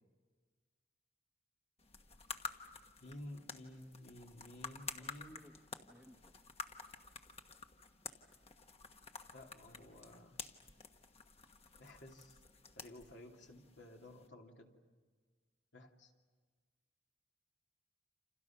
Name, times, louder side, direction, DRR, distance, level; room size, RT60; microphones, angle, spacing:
sound 1, 1.8-14.3, left 5 dB, 35° left, 1.3 m, -51 dB
voice 1, 3.0-5.4 9.3-10.4 11.8-12.4 12.7-14.7 15.7-16.1, left 1 dB, 65° left, 1 dB, 2.9 m, -53 dB
voice 2, 5.0-6.3, equal, 5° right, 5 dB, 1.1 m, -61 dB
29.5 x 27.5 x 6.0 m, 1.4 s
head